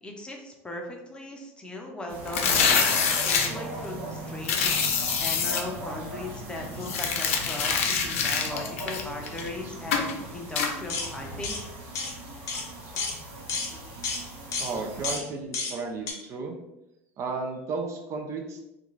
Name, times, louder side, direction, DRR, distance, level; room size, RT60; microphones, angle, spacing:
voice 1, 0.0-11.6, left 2 dB, 15° left, 1 dB, 0.6 m, -38 dB
sound 1, 2.1-15.2, right 1 dB, 80° right, 0.8 m, -39 dB
sound 2, 2.3-3.5 4.4-5.6 6.8-9.5 9.9-10.1 10.6-10.7, left 6 dB, 85° left, 0.4 m, -25 dB
sound 3, 10.9-11.1 11.4-11.6 11.9-12.1 12.5-12.6 13.0-13.2 13.5-13.7 14.0-14.2 14.5-14.7 15.0-15.2 15.5-15.7 16.1-16.2, left 4 dB, 50° left, 0.7 m, -31 dB
voice 2, 14.6-16.5 17.2-18.6, right 4 dB, 45° right, 3 dB, 0.4 m, -33 dB
2.4 x 2.3 x 3.0 m, 0.92 s
supercardioid pair, 95°, 7 cm